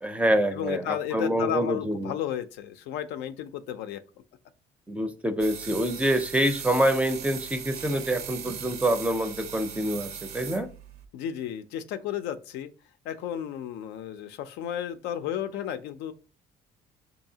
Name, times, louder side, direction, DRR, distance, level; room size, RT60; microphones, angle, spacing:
voice 1, 0.0-2.1 4.9-10.7, right 1 dB, 10° right, 0.4 m, -26 dB
voice 2, 0.5-4.0 11.1-12.7 13.0-16.1, left 10 dB, 85° left, 0.4 m, -33 dB
sound 1, 5.4-11.1, right 8 dB, 70° right, 0.5 m, -39 dB
4.7 x 2.7 x 2.7 m
cardioid pair, 110°, 17 cm